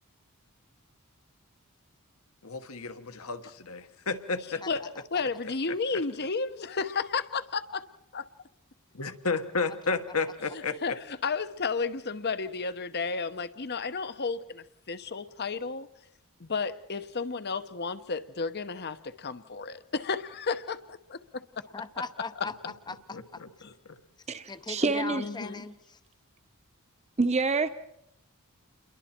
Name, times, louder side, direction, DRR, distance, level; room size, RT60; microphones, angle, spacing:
voice 1, 2.4-4.6 8.9-10.8 23.1-23.5 23.9-24.0, left 4 dB, 70° left, 8 dB, 1.4 m, -32 dB
voice 2, 5.1-7.8 8.1-8.3 10.5-15.9 16.4-21.2 23.6-23.7 25.1-25.7, left 4 dB, 50° left, 12 dB, 0.9 m, -32 dB
voice 3, 21.7-23.4 24.5-26.0, left 4 dB, 20° left, 11 dB, 0.7 m, -39 dB
voice 4, 24.3-25.2 27.2-27.7, right 3 dB, 30° right, 10 dB, 0.9 m, -27 dB
28.5 x 22.5 x 4.4 m, 0.78 s
head